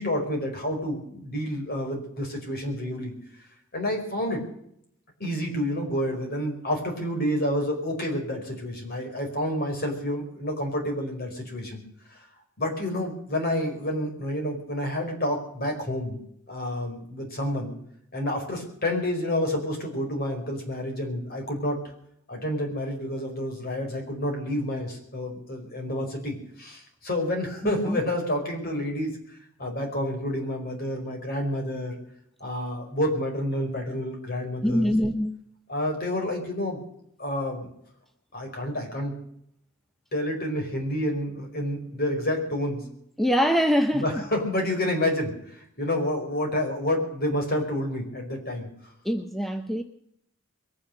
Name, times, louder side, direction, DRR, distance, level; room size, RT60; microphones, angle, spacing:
voice 1, 0.0-3.1 3.7-4.4 5.2-11.8 12.1-12.2 12.6-16.2 16.5-17.7 18.1-21.8 22.3-29.2 29.6-32.0 32.4-34.9 35.7-36.8 37.2-37.7 38.3-39.1 40.1-42.8 43.9-48.7, left 1 dB, 45° left, 4.9 m, -29 dB
voice 2, 34.6-35.4 43.2-44.2 49.0-49.8, equal, ahead, 0.7 m, -24 dB
22.0 x 10.0 x 6.6 m
head